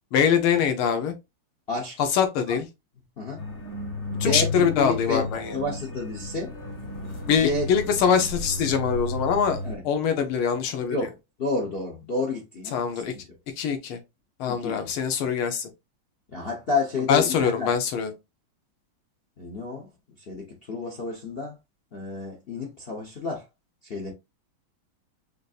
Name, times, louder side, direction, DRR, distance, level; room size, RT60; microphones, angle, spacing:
voice 1, 0.1-1.1 2.1-2.6 4.2-5.6 7.3-11.0 12.7-13.1 13.6-14.0 14.4-15.7 17.1-18.1, left 7 dB, 90° left, 1.7 m, -23 dB
sound 1, 3.4-9.7, left 2 dB, 35° left, 1.0 m, -33 dB
voice 2, 4.1-5.3 5.5-6.5 7.2-7.7 9.6-9.8 10.9-11.1 11.4-13.2 14.4-14.9 16.3-17.7 19.4-19.9 20.2-21.6 21.9-23.5 23.8-24.1, left 3 dB, 60° left, 0.6 m, -30 dB
5.0 x 2.6 x 2.4 m
omnidirectional pair, 2.3 m